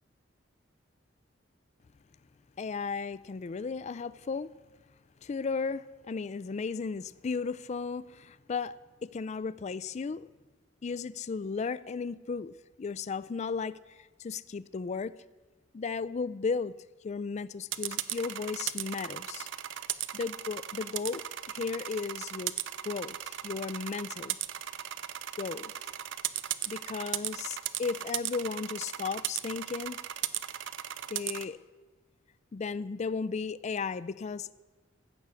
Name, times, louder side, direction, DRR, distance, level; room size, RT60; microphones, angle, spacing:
voice 1, 2.6-4.5 5.2-8.7 9.0-10.2 10.8-13.8 14.2-15.1 15.7-16.7 17.0-19.5 20.1-22.5 22.8-24.4 25.4-25.7 26.7-30.0 31.1-31.6 32.5-34.5, left 5 dB, 35° left, 0.4 m, -35 dB
sound 1, 17.7-31.5, right 12 dB, 70° right, 0.5 m, -36 dB
15.0 x 6.2 x 8.2 m
head